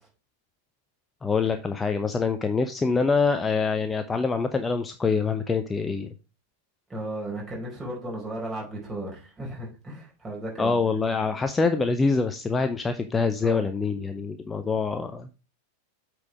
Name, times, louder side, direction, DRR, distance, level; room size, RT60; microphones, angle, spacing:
voice 1, 1.2-6.1 10.6-15.3, left 4 dB, 15° left, 8 dB, 0.6 m, -25 dB
voice 2, 6.9-11.0 13.4-13.6, right 1 dB, 15° right, -3 dB, 4.7 m, -35 dB
8.4 x 4.7 x 4.8 m, 0.33 s
figure-of-eight pair, 90°, 0 cm